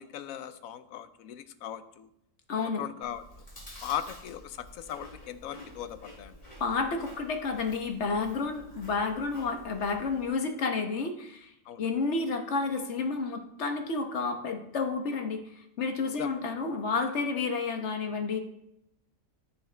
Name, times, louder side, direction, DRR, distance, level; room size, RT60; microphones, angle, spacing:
voice 1, 0.0-2.1 2.6-3.2 3.8-6.4 11.7-11.8 16.2-16.4, left 10 dB, 85° left, 12 dB, 1.1 m, -38 dB
voice 2, 2.5-2.8 6.6-11.5 11.8-15.4 15.8-18.4, left 4 dB, 60° left, 4 dB, 1.3 m, -30 dB
Chewing mastication, 3.0-10.3, left 1 dB, 30° left, 2.9 m, -50 dB
14.0 x 5.8 x 3.3 m, 0.80 s
omnidirectional pair, 1.4 m